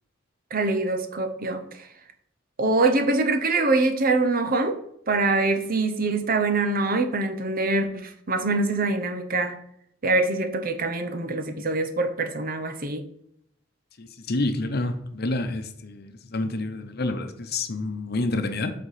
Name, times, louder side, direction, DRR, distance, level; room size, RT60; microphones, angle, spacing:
voice 1, 0.5-1.9 2.6-4.8 5.1-9.6 10.0-13.0, right 3 dB, 50° right, 7 dB, 0.9 m, -24 dB
voice 2, 14.0-18.7, left 2 dB, 55° left, 8 dB, 0.9 m, -28 dB
7.9 x 4.4 x 5.0 m, 0.71 s
head